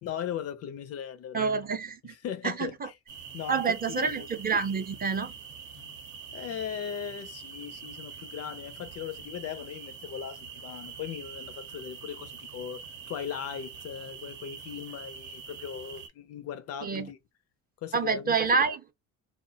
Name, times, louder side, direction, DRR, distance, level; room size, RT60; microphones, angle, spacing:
voice 1, 0.0-1.6 2.0-2.9 3.3-4.3 5.7-6.0 6.3-17.2 17.8-18.4, left 9 dB, 50° left, 0.4 m, -38 dB
voice 2, 1.3-2.1 2.4-2.9 3.5-5.3 16.8-17.1 17.9-18.9, right 5 dB, 30° right, 0.5 m, -28 dB
sound 1, 3.1-16.1, right 6 dB, 65° right, 0.7 m, -44 dB
2.4 x 2.0 x 2.7 m
supercardioid pair, 85°, 32 cm